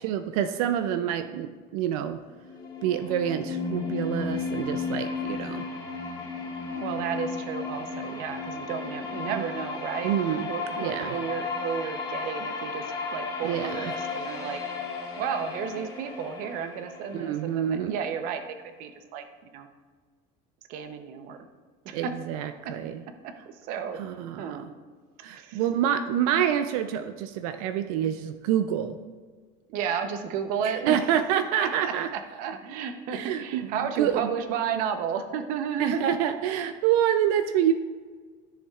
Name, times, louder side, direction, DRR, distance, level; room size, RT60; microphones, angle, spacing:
voice 1, 0.0-2.2 2.8-5.7 9.3-9.4 10.0-10.5 10.8-11.1 13.4-13.9 17.1-17.9 21.9-23.0 24.0-24.6 25.2-29.0 30.6-32.1 33.1-34.3 35.8-37.7, right 10 dB, 85° right, 8 dB, 0.5 m, -27 dB
sound 1, 2.3-18.3, left 4 dB, 20° left, 1.1 m, -34 dB
voice 2, 6.7-10.1 10.5-12.8 13.1-19.2 19.5-19.7 20.7-21.4 21.8-22.2 22.6-22.7 23.2-24.0 24.4-24.7 25.2-25.6 29.7-31.0 31.6-36.1, right 7 dB, 50° right, 7 dB, 0.8 m, -32 dB
13.5 x 7.0 x 2.4 m, 1.5 s
cardioid pair, 170°, 18 cm